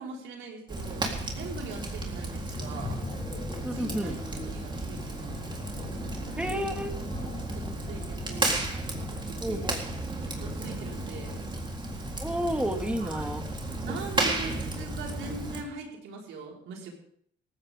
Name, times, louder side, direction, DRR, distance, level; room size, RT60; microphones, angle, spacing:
voice 1, 0.0-3.0 3.7-6.6 7.1-8.6 9.0-9.7 10.0-11.4 13.0-13.3 13.8-16.9, right 3 dB, 85° right, -1 dB, 5.2 m, -42 dB
Fire, 0.7-15.6, right 2 dB, 25° right, 3.9 m, -33 dB
sound 1, 2.5-8.5, left 2 dB, 30° left, 6.3 m, -42 dB
voice 2, 3.6-4.2 6.4-6.9 9.4-9.8 12.2-13.5, equal, 5° right, 4 dB, 2.2 m, -31 dB
18.0 x 15.5 x 3.8 m, 0.63 s
cardioid pair, 90°, 20 cm